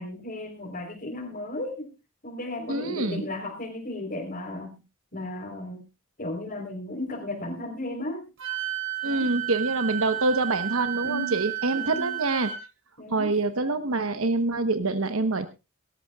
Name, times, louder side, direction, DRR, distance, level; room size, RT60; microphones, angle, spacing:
voice 1, 0.0-1.9 2.2-4.8 5.1-5.8 6.2-8.3 9.0-9.3 11.0-11.5 11.7-12.2 13.0-13.3, left 1 dB, 40° left, -3 dB, 3.9 m, -35 dB
voice 2, 2.7-3.2 9.0-12.5 13.1-15.5, right 3 dB, 75° right, 10 dB, 1.1 m, -26 dB
Wind instrument woodwind instrument, 8.4-12.6, right 15 dB, 60° right, 3.8 m, -32 dB
24.0 x 13.0 x 2.4 m, 0.28 s
head